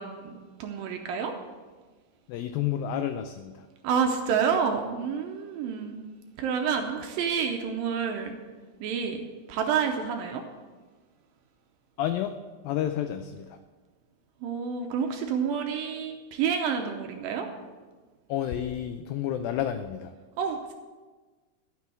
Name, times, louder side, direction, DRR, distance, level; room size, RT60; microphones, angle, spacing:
voice 1, 0.0-1.3 3.8-6.0 6.4-8.3 8.8-10.5 14.4-17.5 20.4-20.7, right 6 dB, 75° right, 4 dB, 2.3 m, -29 dB
voice 2, 2.3-3.5 12.0-12.4 12.6-13.5 18.3-20.1, left 10 dB, 90° left, 8 dB, 2.0 m, -30 dB
13.0 x 6.3 x 6.8 m, 1.4 s
omnidirectional pair, 4.7 m